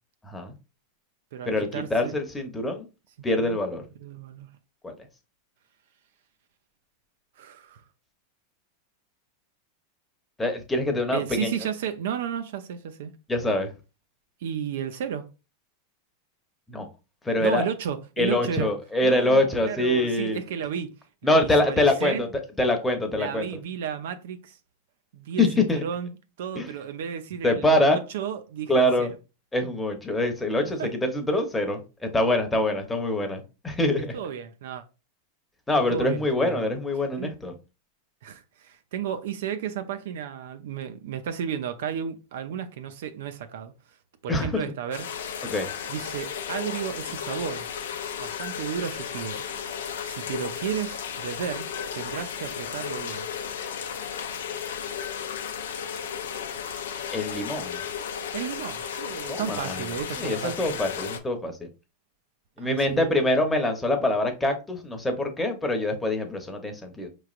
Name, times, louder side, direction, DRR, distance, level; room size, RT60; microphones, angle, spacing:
voice 1, 0.2-0.5 1.5-2.9 3.2-3.8 4.8-4.9 10.4-11.5 13.3-13.7 16.7-16.9 17.2-17.6 18.2-20.4 21.2-22.3 22.6-23.5 25.4-25.8 26.5-26.7 27.4-28.0 28.7-29.1 29.5-34.1 35.7-37.5 44.3-44.6 45.4-45.7 57.1-57.8 59.3-59.8 60.2-61.7 62.6-67.1, left 1 dB, 10° left, 0.9 m, -24 dB
voice 2, 1.3-2.1 3.4-3.6 4.0-4.5 7.4-7.8 11.1-13.2 14.4-15.3 17.4-18.7 19.0-20.9 21.2-22.2 23.1-24.6 25.1-29.1 30.8-30.9 34.1-34.8 35.9-36.7 37.2-37.3 38.2-43.7 44.2-45.3 45.9-47.7 48.2-49.4 50.0-51.7 51.9-53.3 58.3-60.8 62.6-63.2, right 8 dB, 75° right, 0.5 m, -33 dB
sound 1, 44.9-61.2, left 7 dB, 85° left, 0.5 m, -34 dB
4.7 x 3.1 x 2.5 m
hypercardioid pair, 125°, 0 cm